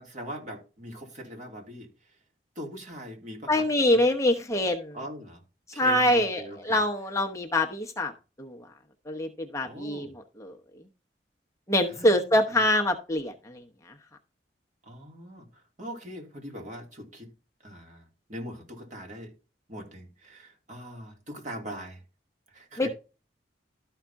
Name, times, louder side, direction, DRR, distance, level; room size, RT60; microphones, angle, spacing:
voice 1, 0.0-1.9 2.5-4.0 4.9-5.4 5.7-6.8 9.6-10.1 11.9-12.1 14.8-15.4 15.8-17.3 17.6-19.3 19.7-22.0 22.5-22.9, equal, 45° right, 3.2 m, -41 dB
voice 2, 3.5-5.0 5.8-8.1 8.4-8.7 9.1-10.1 10.4-10.5 11.7-13.6 22.8-22.9, left 1 dB, 15° left, 0.9 m, -25 dB
13.0 x 5.8 x 3.6 m
head